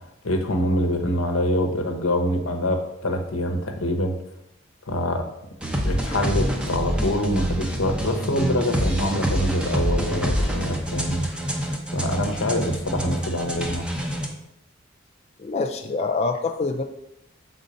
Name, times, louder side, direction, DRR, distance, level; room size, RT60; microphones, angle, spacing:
voice 1, 0.2-4.1 4.9-5.2 5.8-11.3 11.9-13.9, left 1 dB, 90° left, 4 dB, 1.0 m, -25 dB
sound 1, 5.6-14.3, equal, 5° right, 0.7 m, -26 dB
voice 2, 15.4-16.8, left 3 dB, 30° left, 4 dB, 0.4 m, -25 dB
7.0 x 3.9 x 5.0 m, 0.86 s
head